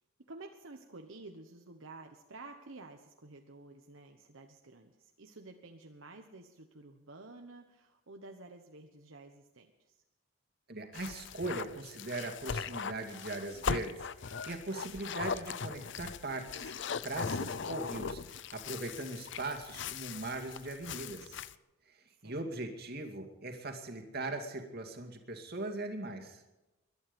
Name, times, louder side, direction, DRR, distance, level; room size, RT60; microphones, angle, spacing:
voice 1, 0.3-10.0 22.2-22.4, right 2 dB, 70° right, 4 dB, 1.2 m, -51 dB
voice 2, 10.7-16.7 17.0-21.4 21.9-26.4, right 2 dB, 50° right, 4 dB, 2.4 m, -40 dB
sound 1, 10.9-21.5, left 6 dB, 60° left, 0.6 m, -39 dB
22.0 x 12.0 x 5.3 m, 1.0 s
head